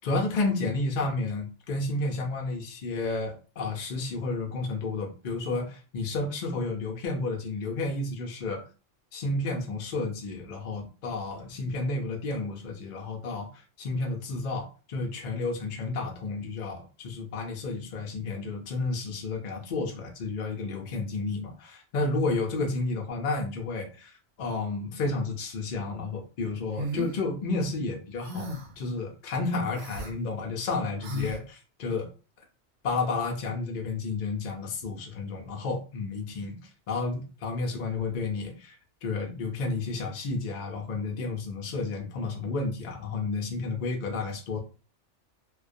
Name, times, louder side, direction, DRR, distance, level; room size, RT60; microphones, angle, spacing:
voice 1, 0.0-8.6 9.1-32.1 32.8-36.6 36.9-44.6, left 3 dB, 55° left, 1 dB, 0.6 m, -31 dB
sound 1, 26.8-27.1 28.2-28.8 29.7-30.1 31.0-31.4, left 1 dB, 80° right, 0.9 m, -34 dB
2.3 x 2.2 x 2.5 m, 0.34 s
omnidirectional pair, 1.2 m